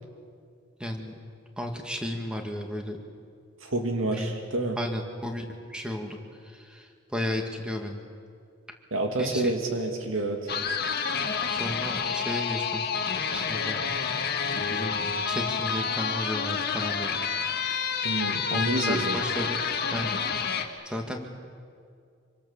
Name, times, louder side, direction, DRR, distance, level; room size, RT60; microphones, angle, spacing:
voice 1, 0.8-1.1 1.6-3.0 4.0-4.3 4.8-8.0 9.2-9.5 11.5-12.8 13.3-13.8 14.7-17.2 18.5-19.6 19.9-20.6 20.8-21.3, left 1 dB, 5° right, 3 dB, 2.1 m, -34 dB
voice 2, 3.6-4.8 8.9-10.5 18.0-19.2, right 2 dB, 80° right, 3 dB, 2.2 m, -28 dB
sound 1, 10.5-20.6, left 6 dB, 50° left, 1.7 m, -29 dB
26.0 x 25.0 x 7.3 m, 2.3 s
head